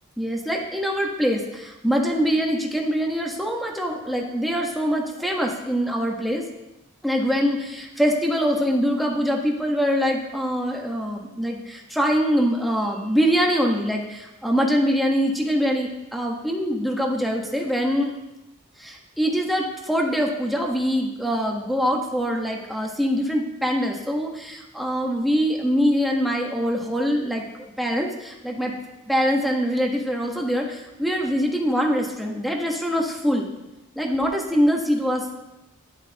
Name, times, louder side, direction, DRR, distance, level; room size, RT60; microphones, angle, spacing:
voice 1, 0.2-6.4 7.0-18.1 18.8-27.4 27.8-28.7 29.0-33.5 34.0-35.3, equal, ahead, -1 dB, 1.1 m, -23 dB
12.5 x 10.5 x 2.9 m, 0.98 s
head